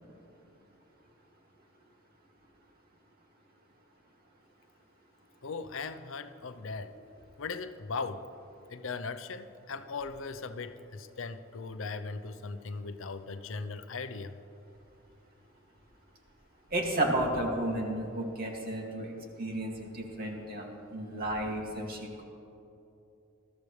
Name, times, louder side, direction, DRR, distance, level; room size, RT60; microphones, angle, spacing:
voice 1, 5.4-6.9 7.4-8.3 8.7-14.4, left 4 dB, 70° left, 10 dB, 0.7 m, -38 dB
voice 2, 16.7-19.1 19.4-22.2, right 1 dB, 50° right, 0 dB, 2.3 m, -32 dB
21.0 x 13.5 x 3.3 m, 2.8 s
head